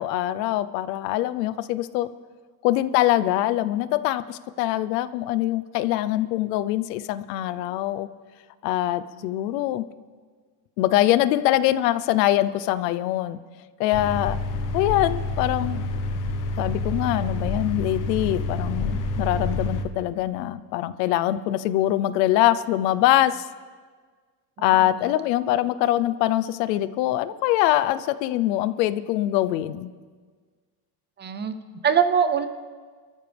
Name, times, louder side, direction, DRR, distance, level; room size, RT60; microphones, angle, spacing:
voice 1, 0.0-2.1 2.6-8.1 8.6-9.8 10.8-13.4 13.8-14.4 14.7-15.8 16.6-23.5 24.6-29.9, left 14 dB, 90° left, 14 dB, 0.8 m, -23 dB
sound 1, 13.9-19.8, left 2 dB, 40° left, 1.2 m, -28 dB
voice 2, 24.6-25.1 31.2-31.5 31.8-32.5, right 7 dB, 20° right, 11 dB, 0.6 m, -23 dB
25.0 x 14.0 x 3.4 m, 1.5 s
cardioid pair, 145°, 48 cm